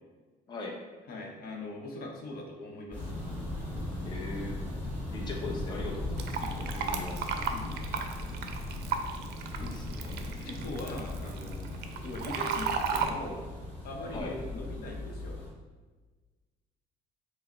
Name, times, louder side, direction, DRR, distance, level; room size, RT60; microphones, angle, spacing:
voice 1, 0.5-0.8 4.0-4.6 5.1-7.4 9.6-10.5 14.1-14.4, left 2 dB, 25° left, -1 dB, 0.7 m, -40 dB
voice 2, 1.1-3.1 6.4-6.8 7.5-8.0 10.3-11.7 12.0-13.4 13.8-15.4, left 2 dB, 60° left, 1 dB, 0.7 m, -41 dB
sound 1, 2.9-15.5, left 1 dB, 10° left, 1.5 m, -38 dB
Fill (with liquid), 6.2-13.1, right 6 dB, 75° right, 0.5 m, -35 dB
4.7 x 2.0 x 4.2 m, 1.3 s
cardioid pair, 110°, 17 cm